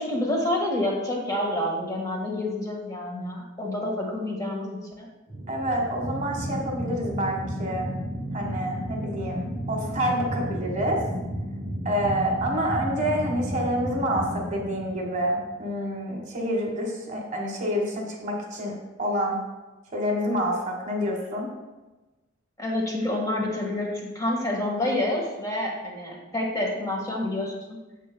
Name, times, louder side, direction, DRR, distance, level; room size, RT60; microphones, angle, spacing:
voice 1, 0.0-5.1 22.6-27.5, left 1 dB, 15° left, -2 dB, 1.5 m, -28 dB
sound 1, 5.3-16.2, equal, ahead, 2.7 m, -33 dB
voice 2, 5.5-7.9 8.3-11.0 11.8-19.4 19.9-21.5, equal, 35° right, 1 dB, 1.4 m, -28 dB
10.0 x 7.6 x 2.2 m, 1.1 s
head